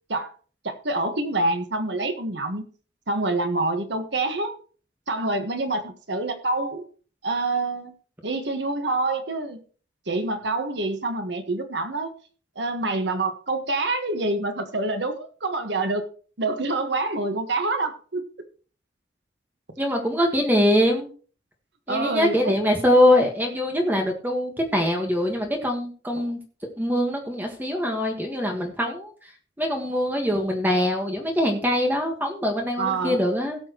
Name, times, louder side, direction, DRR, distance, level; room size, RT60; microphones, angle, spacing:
voice 1, 0.6-2.6 3.1-4.6 5.1-6.9 7.2-7.9 8.2-9.6 10.1-12.1 12.5-16.1 16.4-18.2 21.9-22.6 26.2-26.3 32.8-33.2, right 2 dB, 65° right, 6 dB, 1.5 m, -26 dB
voice 2, 19.8-21.1 21.9-26.4 26.8-29.3 29.6-33.6, left 1 dB, 10° right, 2 dB, 1.6 m, -23 dB
17.5 x 7.2 x 3.1 m, 0.39 s
head